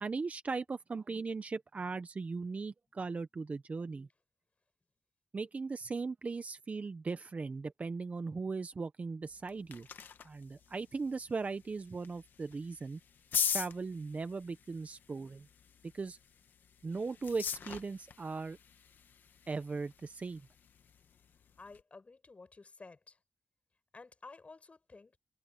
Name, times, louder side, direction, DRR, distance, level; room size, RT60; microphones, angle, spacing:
voice 1, 0.0-4.1 5.3-9.9 10.2-13.0 13.5-15.5 15.9-16.2 16.8-18.6 19.5-20.4, right 4 dB, 45° right, 1.0 m, -38 dB
sound 1, 9.2-21.8, left 7 dB, 80° left, 1.2 m, -43 dB
voice 2, 21.6-23.2 23.9-25.2, left 3 dB, 40° left, 8.0 m, -53 dB
cardioid pair, 60°, 3 cm